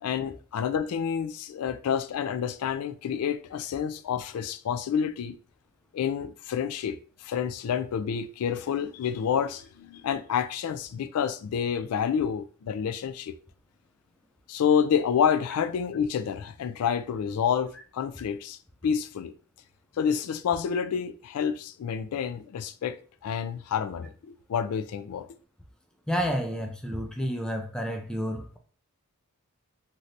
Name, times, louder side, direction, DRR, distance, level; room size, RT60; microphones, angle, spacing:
voice 1, 0.0-5.4 5.9-13.4 14.5-19.3 20.0-23.0 23.2-25.3, left 7 dB, 80° left, 0.3 m, -28 dB
voice 2, 26.1-28.6, equal, 5° left, 0.4 m, -30 dB
3.1 x 2.8 x 2.5 m
head